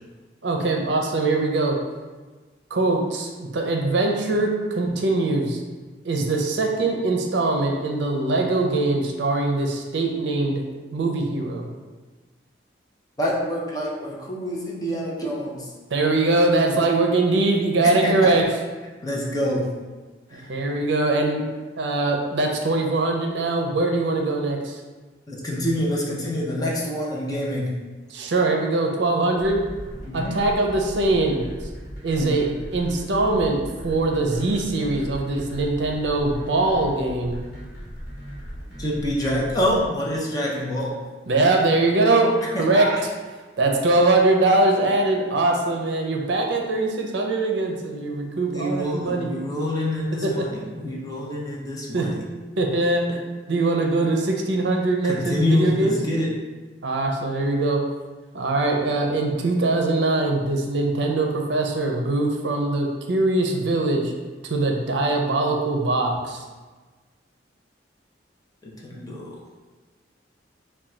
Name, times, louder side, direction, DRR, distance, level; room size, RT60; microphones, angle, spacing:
voice 1, 0.4-1.8 2.7-5.6 6.0-10.6 10.9-11.7 15.9-18.4 20.3-21.4 21.8-24.8 28.1-29.6 30.1-31.4 32.0-37.4 41.3-42.3 42.6-43.1 43.6-49.3 50.2-50.5 51.9-52.1 52.6-53.2 53.5-56.0 56.8-57.8 58.3-64.1 64.5-66.4, right 2 dB, 70° right, 1 dB, 0.5 m, -22 dB
voice 2, 13.2-15.7 17.8-18.3 19.0-19.9 20.3-20.5 25.3-27.9 30.0-30.4 32.1-32.4 38.8-41.0 42.5-43.0 48.5-52.2 55.0-56.4 68.6-69.4, left 1 dB, 20° left, -4 dB, 0.6 m, -26 dB
sound 1, 29.4-39.8, equal, 55° left, 1.2 m, -38 dB
3.6 x 2.2 x 4.3 m, 1.3 s
head